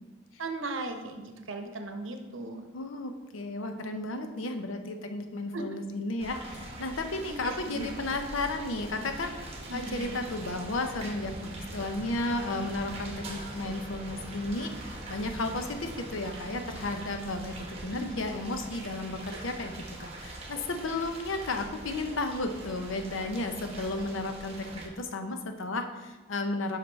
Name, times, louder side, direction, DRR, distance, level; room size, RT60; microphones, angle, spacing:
voice 1, 0.4-2.7 5.5-5.6 7.3-7.9 9.7-10.2 17.9-18.2, right 2 dB, 75° right, 5 dB, 0.8 m, -37 dB
voice 2, 2.7-26.8, left 2 dB, 80° left, 6 dB, 0.7 m, -33 dB
sound 1, 6.2-24.9, right 1 dB, 30° right, 1.0 m, -42 dB
5.6 x 5.3 x 4.5 m, 1.2 s
head